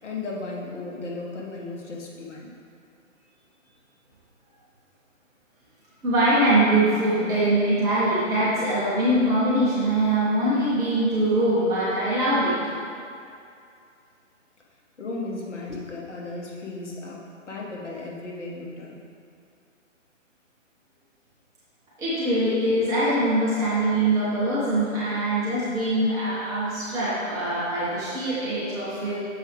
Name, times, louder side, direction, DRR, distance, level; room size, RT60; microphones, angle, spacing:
voice 1, 0.0-2.5 15.0-18.9, left 3 dB, 60° left, -3 dB, 1.4 m, -35 dB
voice 2, 6.0-12.5 22.0-29.2, right 1 dB, 10° right, -12 dB, 1.0 m, -23 dB
6.9 x 4.8 x 3.4 m, 2.4 s
figure-of-eight pair, 140°, 39 cm